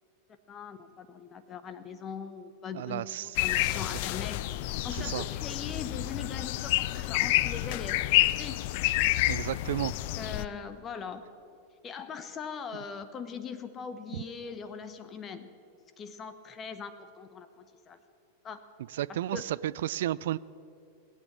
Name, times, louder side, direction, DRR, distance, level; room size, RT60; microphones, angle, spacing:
voice 1, 0.5-4.5 4.8-8.6 10.1-11.3 11.8-15.5 16.0-18.0 18.4-18.6 19.1-19.4, left 6 dB, 25° left, 11 dB, 1.0 m, -41 dB
voice 2, 2.7-3.4 4.9-5.2 9.3-9.9 18.9-20.4, right 13 dB, 55° right, 19 dB, 0.3 m, -32 dB
sound 1, 3.4-10.5, left 16 dB, 50° left, 0.4 m, -29 dB
20.0 x 8.9 x 7.4 m, 2.5 s
figure-of-eight pair, 90°, 0 cm